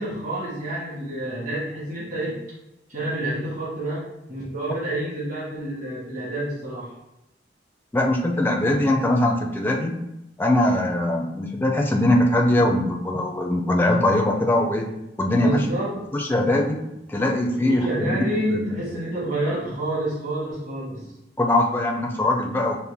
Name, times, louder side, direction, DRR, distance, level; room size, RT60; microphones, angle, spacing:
voice 1, 0.0-2.4 2.9-6.9 15.4-16.0 17.6-21.1, right 1 dB, 45° right, -8 dB, 1.5 m, -28 dB
voice 2, 7.9-9.9 10.4-15.6 16.1-16.8 17.1-18.2 18.5-18.7 21.4-22.8, left 1 dB, 10° left, 1 dB, 0.4 m, -21 dB
5.5 x 2.1 x 3.4 m, 0.89 s
head